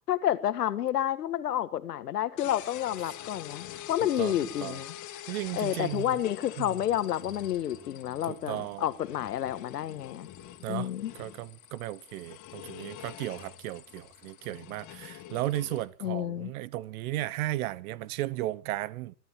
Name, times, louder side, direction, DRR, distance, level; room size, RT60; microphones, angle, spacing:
voice 1, 0.1-5.0 5.5-10.3 10.7-11.1 16.0-16.5, left 11 dB, 85° left, 1.6 m, -30 dB
sound 1, 2.4-15.9, left 12 dB, 40° left, 2.3 m, -46 dB
voice 2, 4.2-4.8 5.3-6.2 6.6-6.7 8.3-8.8 10.6-10.9 11.2-19.1, right 15 dB, 65° right, 1.0 m, -35 dB
22.0 x 12.5 x 4.4 m
hypercardioid pair, 105°, 46 cm